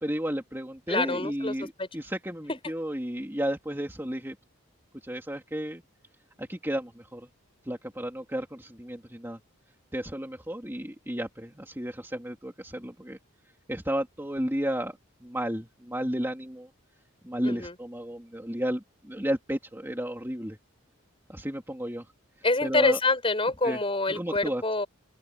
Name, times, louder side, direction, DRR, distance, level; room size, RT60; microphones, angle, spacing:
voice 1, 0.0-4.4 5.0-5.8 6.4-7.3 7.7-9.4 9.9-13.2 13.7-16.7 17.2-20.6 21.3-22.1 22.6-23.0 23.6-23.8 24.1-24.6, equal, 10° right, 2.7 m, -33 dB
voice 2, 0.9-1.9 17.4-17.7 22.4-24.9, left 2 dB, 25° left, 6.7 m, -26 dB
open air
head